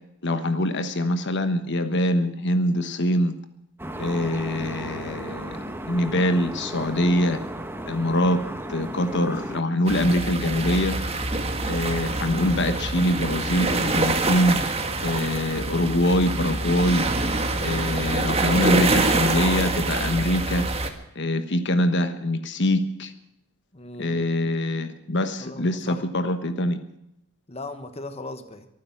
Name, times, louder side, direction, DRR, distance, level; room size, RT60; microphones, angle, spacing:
voice 1, 0.2-3.3 4.0-7.4 7.9-8.4 8.7-11.0 11.7-14.6 15.0-17.1 17.6-20.7 21.1-23.1 24.0-26.8, left 1 dB, 50° left, 9 dB, 1.2 m, -24 dB
sound 1, 3.8-9.6, right 1 dB, 10° right, 1.2 m, -35 dB
voice 2, 5.0-5.3 23.7-24.2 25.4-26.1 27.5-28.7, left 2 dB, 25° left, 8 dB, 1.3 m, -39 dB
sound 2, 9.9-20.9, right 2 dB, 25° right, 1.6 m, -25 dB
24.5 x 9.8 x 5.9 m, 0.80 s
head